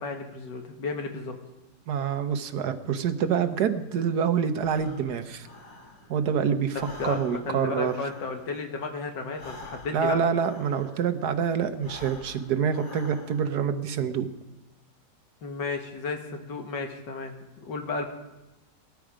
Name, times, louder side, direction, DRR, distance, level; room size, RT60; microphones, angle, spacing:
voice 1, 0.0-1.4 6.7-10.2 15.4-18.1, left 4 dB, 85° left, 4 dB, 2.3 m, -33 dB
voice 2, 1.9-5.5 6.1-6.8 7.0-7.9 9.9-14.3, right 7 dB, 70° right, 10 dB, 1.5 m, -26 dB
Breathing, 4.6-6.3 6.6-11.2 11.7-13.6, left 2 dB, 50° left, 2.7 m, -47 dB
19.0 x 13.0 x 5.0 m, 1.0 s
omnidirectional pair, 1.9 m